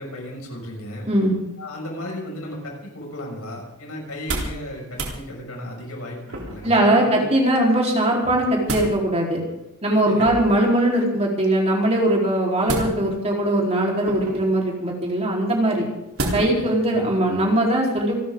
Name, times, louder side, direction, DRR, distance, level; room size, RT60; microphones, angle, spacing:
voice 1, 0.0-1.1 1.6-7.3 10.0-10.3 16.5-17.1, left 1 dB, 85° left, 0 dB, 6.4 m, -35 dB
sound 1, 4.1-4.6 4.9-5.2 6.3-6.8 8.2-8.9 10.1-10.6 12.6-13.3 14.0-14.5 16.2-16.6 17.1-17.2, right 2 dB, 85° right, 3.8 m, -29 dB
voice 2, 6.6-9.4 9.8-15.9 16.3-18.2, right 1 dB, 30° right, -1 dB, 4.2 m, -20 dB
27.5 x 13.0 x 3.9 m, 0.91 s
head